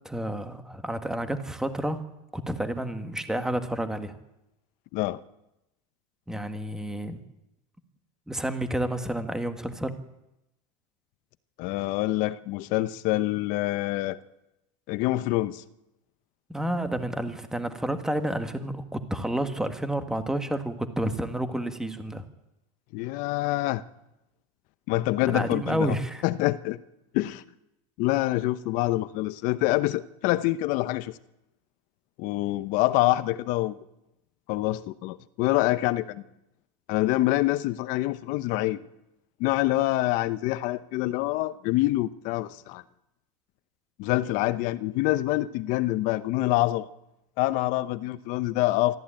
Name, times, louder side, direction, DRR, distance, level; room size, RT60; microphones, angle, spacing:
voice 1, 0.0-2.0 2.3-4.2 6.3-7.2 8.3-9.9 16.5-22.2 25.2-26.2, right 1 dB, 5° right, 1.6 m, -30 dB
voice 2, 11.6-14.2 14.9-15.6 22.9-23.8 24.9-26.0 26.2-26.8 27.1-27.4 28.0-31.2 32.2-33.8 34.5-36.2 36.9-38.8 39.4-42.8 44.0-46.9 47.4-49.0, left 17 dB, 50° left, 0.9 m, -26 dB
23.5 x 14.0 x 8.9 m
supercardioid pair, 145°, 17 cm